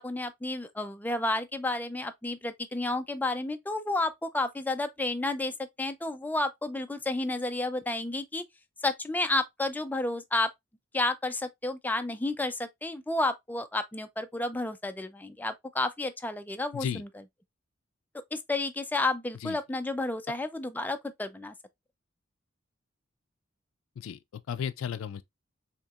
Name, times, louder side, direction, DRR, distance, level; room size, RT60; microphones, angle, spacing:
voice 1, 0.0-8.4 8.8-10.5 10.9-17.1 18.3-21.5, left 2 dB, 10° left, 0.4 m, -31 dB
voice 2, 24.0-25.2, left 8 dB, 85° left, 0.3 m, -34 dB
4.4 x 2.8 x 2.4 m
head